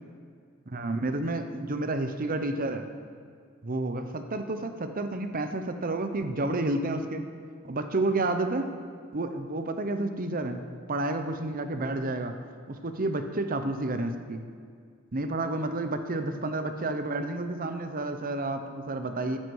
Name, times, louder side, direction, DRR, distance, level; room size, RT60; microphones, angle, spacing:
voice 1, 0.7-2.9 3.6-7.3 7.6-8.7 9.1-10.6 10.9-12.4 12.7-14.4 15.1-19.4, right 2 dB, 45° right, 7 dB, 0.9 m, -30 dB
14.5 x 10.0 x 4.8 m, 2.1 s
head